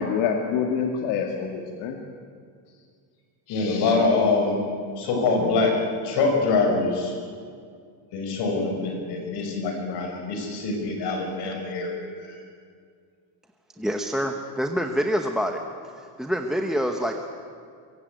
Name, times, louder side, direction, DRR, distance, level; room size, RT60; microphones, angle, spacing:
voice 1, 0.0-2.0 3.5-4.3 13.9-14.0, left 6 dB, 75° left, 2 dB, 2.3 m, -27 dB
voice 2, 3.5-4.6 5.0-7.2 8.1-12.4, left 3 dB, 55° left, 3 dB, 6.0 m, -24 dB
voice 3, 13.8-15.6 16.0-17.1, equal, ahead, 4 dB, 0.9 m, -26 dB
23.5 x 23.5 x 9.3 m, 2.2 s
cardioid pair, 170°, 47 cm